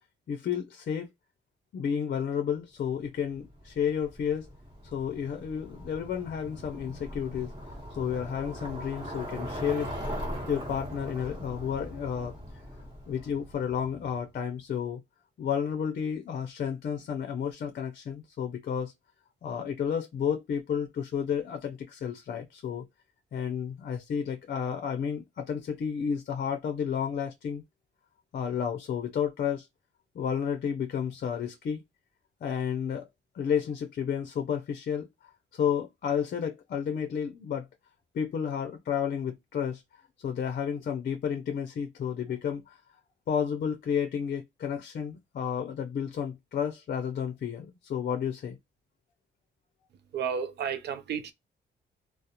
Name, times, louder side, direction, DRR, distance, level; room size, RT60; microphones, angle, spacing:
voice 1, 0.3-1.1 1.7-4.5 4.9-7.5 7.9-9.9 10.5-12.3 13.1-15.0 15.4-18.9 19.4-22.9 23.3-27.6 28.3-29.7 30.1-31.8 32.4-33.1 33.3-35.1 35.5-37.7 38.1-39.8 40.2-42.8 43.3-48.6, left 7 dB, 55° left, 0.5 m, -31 dB
Bicycle, 3.3-14.2, equal, 25° right, 1.2 m, -40 dB
voice 2, 50.1-51.3, right 7 dB, 65° right, 0.5 m, -32 dB
2.4 x 2.0 x 2.8 m
cardioid pair, 110°, 19 cm